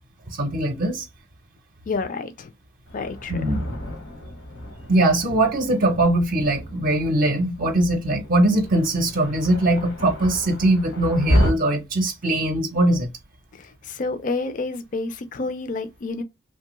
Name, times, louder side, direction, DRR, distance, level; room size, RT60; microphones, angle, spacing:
voice 1, 0.3-1.1 3.3-3.6 4.9-13.1, right 1 dB, 50° right, 0.6 m, -21 dB
voice 2, 1.9-2.5 2.9-3.5 13.5-16.2, left 3 dB, 45° left, 0.4 m, -29 dB
Thunder, 2.9-11.5, equal, 90° left, 1.1 m, -30 dB
2.9 x 2.2 x 2.9 m
head